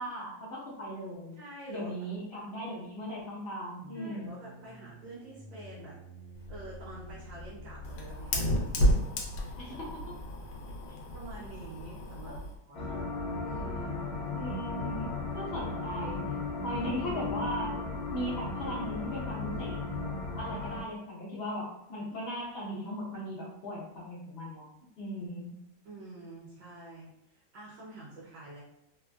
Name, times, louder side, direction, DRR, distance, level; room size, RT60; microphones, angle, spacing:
voice 1, 0.0-1.4 1.7-4.3 9.6-9.7 12.3-12.4 14.3-16.2 16.6-17.7 18.1-19.8 20.3-24.6 25.0-25.5, equal, 45° left, -6 dB, 0.8 m, -38 dB
voice 2, 1.3-2.1 3.9-6.0 6.5-9.8 11.1-13.0 13.4-14.0 25.8-28.6, right 2 dB, 70° right, -6 dB, 1.2 m, -47 dB
sound 1, 3.8-10.6, left 1 dB, 85° right, 1.4 m, -49 dB
Fire, 6.4-12.6, equal, 85° left, 1.3 m, -32 dB
sound 2, 12.7-20.8, left 3 dB, 70° left, 1.0 m, -35 dB
3.4 x 2.2 x 2.2 m, 0.84 s
omnidirectional pair, 1.9 m